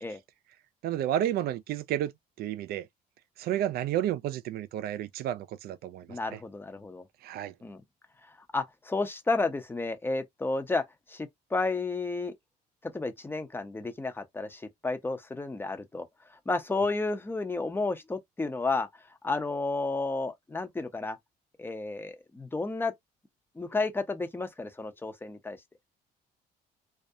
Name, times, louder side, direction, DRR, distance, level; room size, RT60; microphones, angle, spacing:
voice 1, 0.8-2.1 2.4-2.9 3.4-6.4 7.2-7.5, right 11 dB, 65° right, 0.4 m, -31 dB
voice 2, 6.1-7.0 7.6-7.8 8.2-10.8 11.1-12.3 12.8-18.9 19.2-21.2 21.6-22.9 23.6-25.6, left 3 dB, 15° left, 0.5 m, -32 dB
2.3 x 2.0 x 2.7 m
cardioid pair, 110°, 17 cm